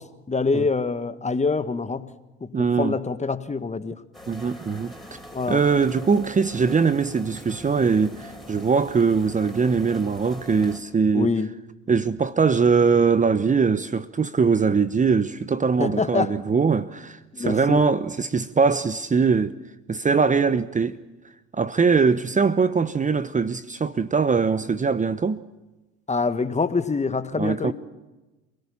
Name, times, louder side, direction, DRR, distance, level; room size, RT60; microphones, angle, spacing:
voice 1, 0.0-2.1 2.4-4.0 5.3-5.6 11.1-11.5 15.8-16.4 17.3-17.9 26.1-27.7, left 4 dB, 20° left, 1.6 m, -25 dB
voice 2, 2.5-3.0 4.3-4.9 5.5-11.3 11.9-19.5 19.9-21.0 21.5-25.4 27.4-27.7, right 5 dB, 25° right, 0.9 m, -21 dB
sound 1, 4.1-10.8, equal, ahead, 6.5 m, -43 dB
28.5 x 18.0 x 7.2 m
hypercardioid pair, 65°, 33 cm